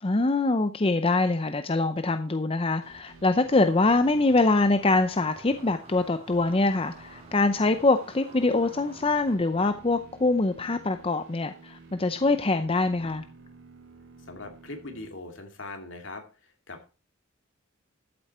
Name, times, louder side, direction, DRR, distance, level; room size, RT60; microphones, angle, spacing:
voice 1, 0.0-13.2, left 2 dB, 25° left, 9 dB, 0.6 m, -24 dB
sound 1, 2.8-15.1, right 3 dB, 75° right, 3.4 m, -51 dB
sound 2, 3.5-9.4, right 2 dB, 30° right, 3.1 m, -51 dB
voice 2, 14.3-16.9, left 2 dB, 65° left, 4 dB, 2.5 m, -41 dB
13.0 x 8.0 x 4.3 m, 0.33 s
head